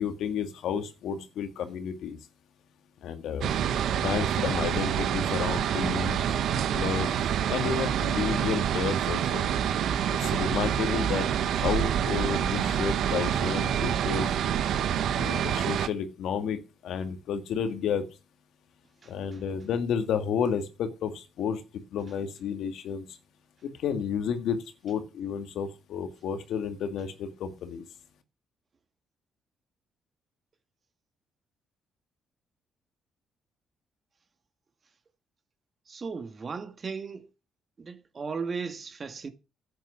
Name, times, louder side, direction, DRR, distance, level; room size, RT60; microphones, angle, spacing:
voice 1, 0.0-2.2 3.0-3.6 4.0-6.2 6.7-7.1 7.5-9.5 10.1-14.3 15.1-18.1 19.1-21.6 21.9-23.2 23.6-24.6 24.8-27.8, left 7 dB, 75° left, 2.0 m, -31 dB
sound 1, 3.4-15.9, right 9 dB, 75° right, 1.2 m, -27 dB
voice 2, 19.0-19.4 35.9-37.3 37.8-39.3, right 5 dB, 40° right, 2.0 m, -36 dB
10.0 x 9.2 x 7.1 m
cardioid pair, 90°, 0 cm